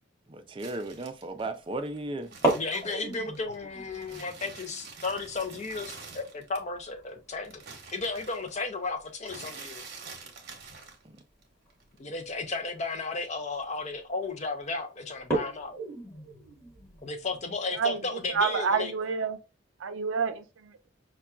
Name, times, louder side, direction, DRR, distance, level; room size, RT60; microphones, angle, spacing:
voice 1, 0.3-2.4 11.0-11.2, right 2 dB, 25° right, 0.4 m, -35 dB
sound 1, 0.6-3.6 3.9-6.8 7.1-11.4 11.7-12.6, right 4 dB, 50° right, 0.9 m, -47 dB
sound 2, 0.8-1.1 2.3-8.7 9.0-9.1 9.5-9.8 10.8-11.0 11.7-11.8 12.3-12.4 12.7-13.1 13.7-14.0 14.4-14.5 15.1-17.5, right 2 dB, 15° left, 1.2 m, -35 dB
voice 2, 2.5-7.6 7.9-9.8 12.0-15.7 17.0-18.9, left 3 dB, 35° left, 0.5 m, -34 dB
voice 3, 18.3-19.4 19.8-20.9, right 6 dB, 80° right, 0.5 m, -28 dB
5.5 x 2.2 x 2.3 m
head